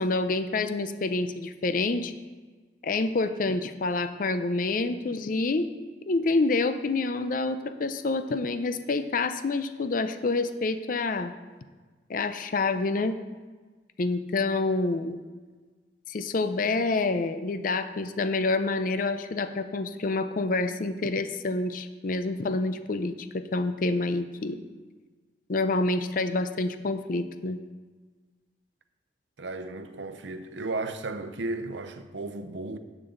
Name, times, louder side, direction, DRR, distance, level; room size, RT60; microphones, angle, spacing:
voice 1, 0.0-2.1 2.8-5.7 6.1-11.3 12.1-13.2 14.0-15.2 16.1-24.6 25.5-27.6, left 3 dB, 50° left, 0.5 m, -27 dB
voice 2, 29.4-32.8, right 2 dB, 80° right, 0.7 m, -34 dB
11.0 x 8.2 x 3.8 m
head